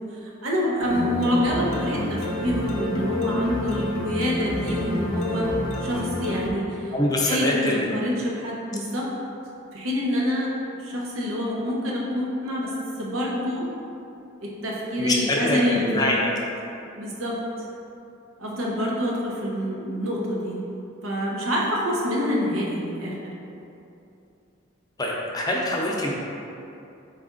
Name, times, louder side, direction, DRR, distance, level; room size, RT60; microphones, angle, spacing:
voice 1, 0.1-5.5 5.8-9.1 9.7-10.5 10.8-13.7 14.4-16.2 16.9-17.4 18.4-20.6 21.0-23.3, equal, 80° right, -3 dB, 0.8 m, -26 dB
sound 1, 0.8-6.5, left 1 dB, 90° left, 0.6 m, -29 dB
voice 2, 6.9-7.9 15.0-16.3 25.0-26.1, left 1 dB, 20° left, -2 dB, 0.4 m, -24 dB
4.1 x 2.4 x 3.6 m, 2.7 s
head